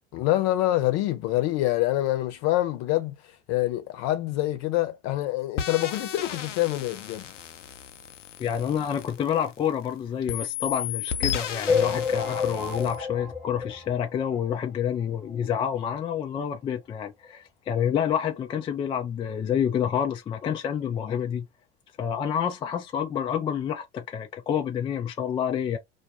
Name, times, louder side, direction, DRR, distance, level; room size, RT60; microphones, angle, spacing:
voice 1, 0.1-3.2 3.5-7.3, left 16 dB, 50° left, 0.8 m, -26 dB
sound 1, 5.6-9.9 10.3-13.0, left 9 dB, 85° left, 0.5 m, -34 dB
voice 2, 8.4-21.5 22.0-25.8, left 8 dB, 15° left, 0.3 m, -28 dB
sound 2, 11.7-14.5 15.0-15.1 15.3-15.4 15.7-15.8 16.7-16.8 17.2-17.3, left 5 dB, ahead, 1.1 m, -29 dB
2.3 x 2.2 x 2.7 m
figure-of-eight pair, 75°, 36 cm